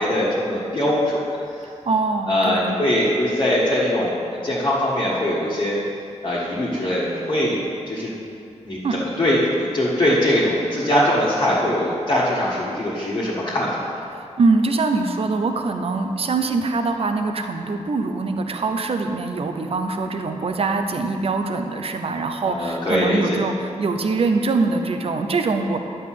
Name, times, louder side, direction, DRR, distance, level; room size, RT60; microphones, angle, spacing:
voice 1, 0.0-1.4 2.3-5.8 6.2-7.6 7.9-8.1 8.6-8.8 9.2-13.8 22.4-23.4, left 1 dB, 35° left, -8 dB, 1.6 m, -21 dB
voice 2, 1.6-2.8 8.8-9.0 14.1-25.8, right 3 dB, 55° right, 5 dB, 0.8 m, -23 dB
10.5 x 5.4 x 7.8 m, 2.5 s
wide cardioid pair, 150°, 12 cm